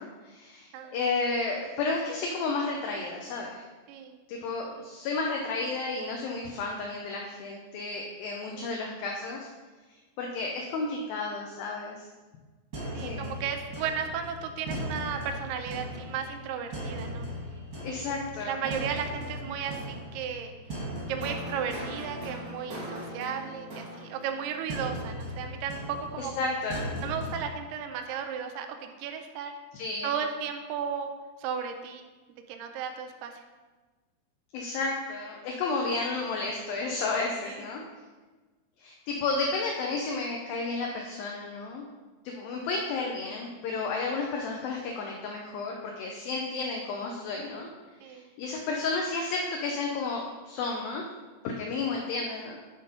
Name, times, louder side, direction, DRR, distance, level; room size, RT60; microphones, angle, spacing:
voice 1, 0.0-3.6 4.3-9.5 10.2-12.0 13.0-13.3 17.8-18.6 26.2-26.9 29.7-30.1 34.5-37.8 38.8-41.8 42.2-47.7 48.0-51.0 51.4-52.6, left 3 dB, 75° left, 0 dB, 2.3 m, -32 dB
sound 1, 12.7-27.5, equal, 40° right, 1.2 m, -38 dB
voice 2, 12.9-17.3 17.9-18.1 18.4-20.5 21.1-26.3 27.0-29.5 30.0-31.1 31.4-32.1 32.5-33.4 37.5-37.6 48.0-48.3, right 7 dB, 80° right, 4 dB, 2.1 m, -35 dB
9.6 x 3.7 x 5.2 m, 1.3 s
omnidirectional pair, 4.5 m